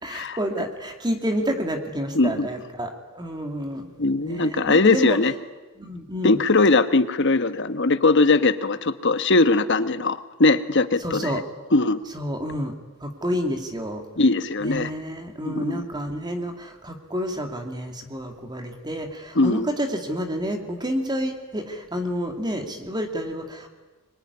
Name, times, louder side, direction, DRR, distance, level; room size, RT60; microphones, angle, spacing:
voice 1, 0.0-3.9 4.2-5.2 5.8-6.4 11.0-11.4 12.1-12.7 13.0-14.0 14.6-23.7, equal, 20° right, 4 dB, 2.5 m, -29 dB
voice 2, 2.1-2.5 4.0-5.3 6.2-11.4 11.7-12.0 14.2-14.9 15.4-15.9 19.3-19.7, left 3 dB, 60° left, 12 dB, 1.2 m, -20 dB
25.0 x 23.5 x 9.7 m, 1.2 s
head